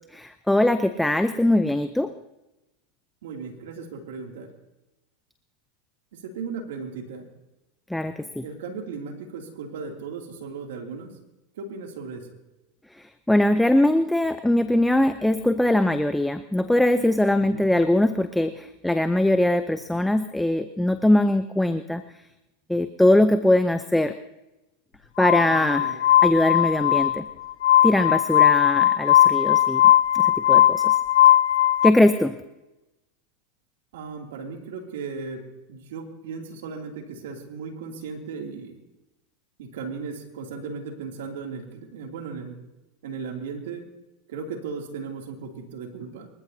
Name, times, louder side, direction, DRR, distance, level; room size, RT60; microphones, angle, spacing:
voice 1, 0.2-2.1 7.9-8.4 13.3-22.0 22.7-24.1 25.2-25.9 26.2-27.2 27.8-29.8 30.1-31.0 31.8-32.4, left 1 dB, 5° left, 10 dB, 0.7 m, -21 dB
voice 2, 3.2-4.5 6.2-7.3 8.4-11.1 11.5-12.3 17.4-17.6 25.4-25.9 33.9-38.8 39.6-42.6 43.0-43.9 44.3-46.3, right 5 dB, 75° right, 3 dB, 2.7 m, -36 dB
Glass, 25.2-31.9, left 12 dB, 80° left, 0.7 m, -18 dB
26.0 x 14.5 x 2.8 m, 0.97 s
hypercardioid pair, 100°, 0 cm